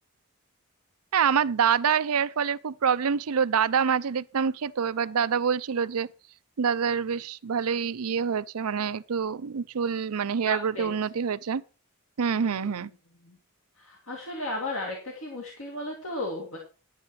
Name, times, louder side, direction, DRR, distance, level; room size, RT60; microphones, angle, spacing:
voice 1, 1.1-6.1 6.6-11.6 12.2-12.9, right 7 dB, 90° right, 0.5 m, -26 dB
voice 2, 10.4-10.9 12.3-12.9 13.2-13.4 13.8-16.6, left 2 dB, 70° left, 2.3 m, -35 dB
10.5 x 9.2 x 4.7 m
head